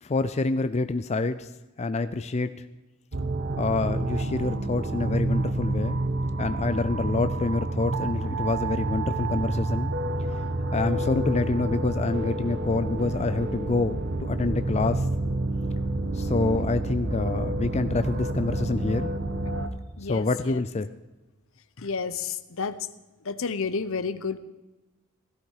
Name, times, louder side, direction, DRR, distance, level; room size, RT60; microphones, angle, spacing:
voice 1, 0.0-1.5 1.8-2.5 3.6-6.0 6.4-9.9 10.7-15.1 16.1-19.1 20.0-20.9, left 3 dB, 30° left, 11 dB, 0.5 m, -27 dB
sound 1, 3.1-19.7, right 2 dB, 55° right, 1.3 m, -29 dB
voice 2, 16.4-16.7 20.0-20.6 21.8-22.8 23.2-24.4, left 5 dB, 65° left, 12 dB, 0.9 m, -31 dB
16.5 x 14.5 x 4.8 m, 1.1 s
head